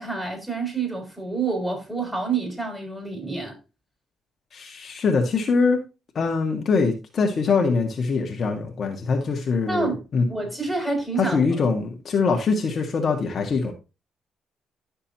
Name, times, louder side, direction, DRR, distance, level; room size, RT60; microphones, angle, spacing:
voice 1, 0.0-3.5 9.7-10.0 10.3-11.4, right 4 dB, 5° right, 6.2 m, -28 dB
voice 2, 4.5-5.8 6.2-10.2 11.2-13.7, left 4 dB, 50° left, 1.9 m, -23 dB
12.0 x 6.7 x 3.0 m
cardioid pair, 90°, 0 cm